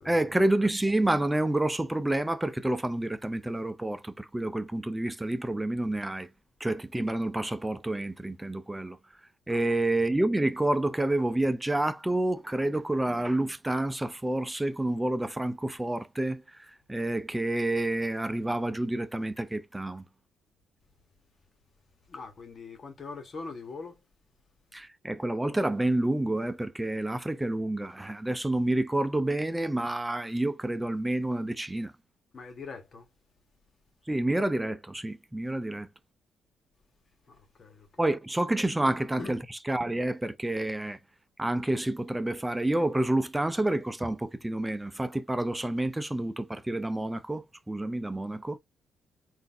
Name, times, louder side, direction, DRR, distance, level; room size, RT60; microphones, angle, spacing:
voice 1, 0.0-6.3 6.6-9.0 9.5-16.6 16.9-20.0 24.7-31.9 34.1-35.9 38.0-39.4 39.7-41.0 41.4-48.6, right 1 dB, 15° right, 0.7 m, -29 dB
voice 2, 22.1-24.0 32.3-33.1 37.3-38.1 38.8-39.3, left 4 dB, 50° left, 1.5 m, -43 dB
3.9 x 2.7 x 3.5 m
hypercardioid pair, 45°, 0 cm